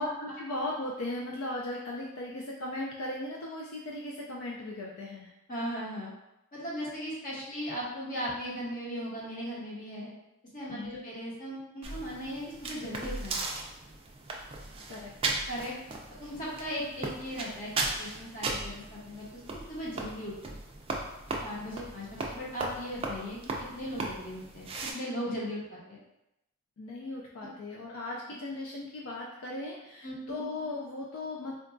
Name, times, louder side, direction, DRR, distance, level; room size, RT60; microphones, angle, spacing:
voice 1, 0.0-5.3 10.7-11.0 14.9-15.3 26.8-31.5, left 2 dB, 85° left, -2 dB, 0.4 m, -37 dB
voice 2, 5.5-6.1 6.5-10.1 10.5-13.3 15.5-15.7 16.2-19.2 19.7-20.5 21.4-26.0 30.0-30.4, equal, 40° left, -6 dB, 1.0 m, -37 dB
sound 1, 11.8-24.9, right 3 dB, 25° right, 0.3 m, -37 dB
3.8 x 2.3 x 2.5 m, 0.89 s
head